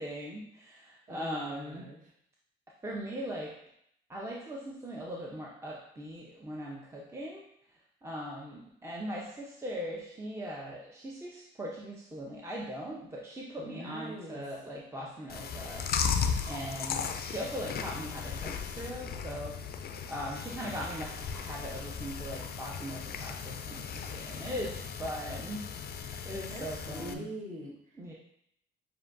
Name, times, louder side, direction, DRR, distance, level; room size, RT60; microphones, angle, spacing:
voice 1, 0.0-1.9 2.8-3.5 4.1-7.4 8.0-19.5 20.1-24.7 25.0-25.6 26.2-27.3 28.0-28.1, equal, 15° right, -3 dB, 0.6 m, -40 dB
voice 2, 1.1-2.1 13.6-14.4 26.5-28.0, right 1 dB, 40° right, -3 dB, 1.3 m, -44 dB
Chewing mastication, 15.3-27.1, left 6 dB, 50° left, 0.4 m, -36 dB
6.9 x 2.6 x 2.5 m, 0.72 s
cardioid pair, 90°, 20 cm